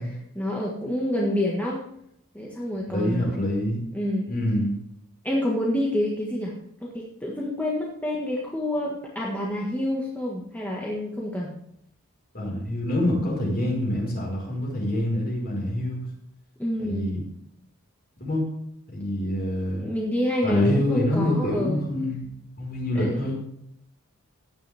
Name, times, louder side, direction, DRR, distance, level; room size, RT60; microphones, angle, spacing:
voice 1, 0.0-1.8 2.3-3.5 3.9-4.3 5.2-6.6 6.8-11.5 16.6-17.1 19.8-21.9 23.0-23.3, left 1 dB, 5° left, -3 dB, 1.6 m, -28 dB
voice 2, 2.9-3.8 4.3-4.7 12.3-16.0 16.8-17.2 18.2-18.5 18.9-19.9 20.4-23.3, left 1 dB, 45° left, -2 dB, 4.8 m, -26 dB
15.5 x 10.0 x 3.5 m, 0.72 s
head